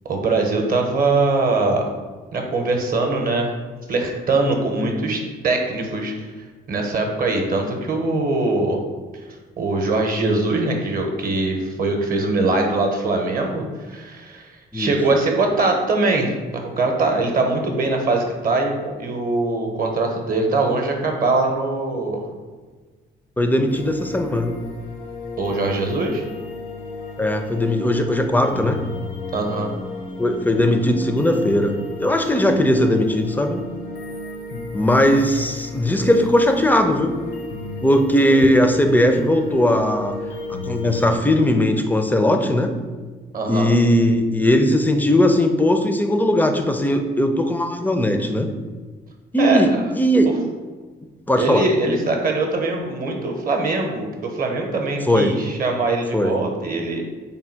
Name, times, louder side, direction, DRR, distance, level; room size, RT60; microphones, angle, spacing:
voice 1, 0.0-1.9 2.3-3.5 3.9-8.8 9.3-22.3 25.4-26.2 29.3-29.8 43.3-43.7 49.4-49.6 50.3-50.4 51.4-57.0, right 3 dB, 45° right, 2 dB, 0.7 m, -22 dB
voice 2, 23.4-24.6 27.2-28.8 30.2-33.6 34.7-37.1 37.8-40.1 40.5-42.7 43.5-48.5 49.3-50.3 51.3-51.6 55.1-55.4 56.1-56.4, left 1 dB, 10° left, 5 dB, 0.4 m, -18 dB
sound 1, 23.7-41.2, left 3 dB, 70° left, 0.7 m, -33 dB
3.5 x 2.2 x 4.4 m, 1.4 s
cardioid pair, 90°, 20 cm